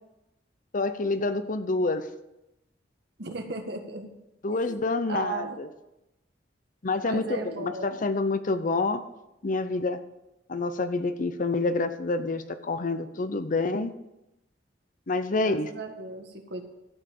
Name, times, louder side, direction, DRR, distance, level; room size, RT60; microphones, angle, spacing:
voice 1, 0.7-2.1 4.4-5.7 6.8-9.0 9.4-10.0 10.5-13.9 15.1-15.7, left 3 dB, 45° left, 11 dB, 0.7 m, -27 dB
voice 2, 3.2-4.1 4.7-4.8 5.1-5.6 7.0-8.0 15.3-16.6, right 3 dB, 65° right, 4 dB, 1.5 m, -36 dB
12.5 x 5.6 x 6.7 m, 0.90 s
head